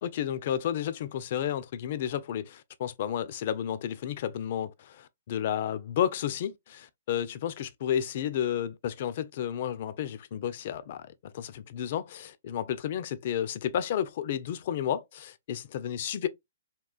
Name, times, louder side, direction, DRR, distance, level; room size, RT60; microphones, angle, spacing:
voice 1, 0.0-16.3, left 10 dB, 50° left, 0.4 m, -32 dB
3.6 x 2.4 x 2.3 m
hypercardioid pair, 135°, 0 cm